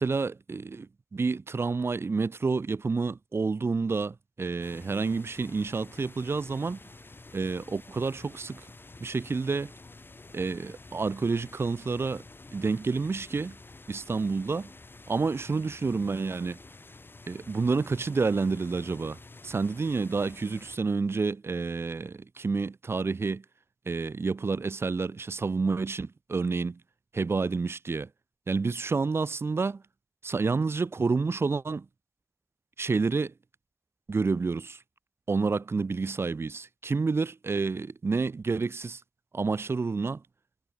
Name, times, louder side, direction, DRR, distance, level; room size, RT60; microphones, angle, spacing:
voice 1, 0.0-6.8 7.3-8.6 9.0-9.7 10.3-12.2 12.5-13.6 13.9-14.7 15.1-16.6 17.3-23.4 23.9-26.8 27.1-28.1 28.5-29.8 30.2-31.9 32.8-33.3 34.1-34.8 35.3-39.0 39.3-40.2, right 4 dB, 90° right, 0.8 m, -29 dB
sound 1, 4.6-20.8, left 3 dB, 60° left, 2.1 m, -50 dB
wide cardioid pair, 40°, 4 cm